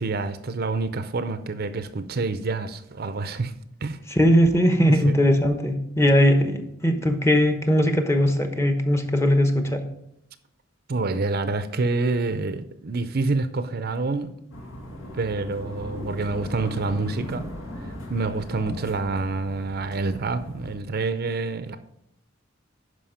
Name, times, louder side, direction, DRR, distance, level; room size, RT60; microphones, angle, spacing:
voice 1, 0.0-3.5 3.8-4.0 4.9-5.2 6.4-6.5 10.9-14.3 15.1-17.5 17.8-21.8, right 3 dB, 50° right, 0.6 m, -27 dB
voice 2, 4.1-9.8, equal, 15° left, 0.9 m, -20 dB
sound 1, 14.5-20.8, equal, 75° left, 1.8 m, -38 dB
11.5 x 4.9 x 5.0 m
head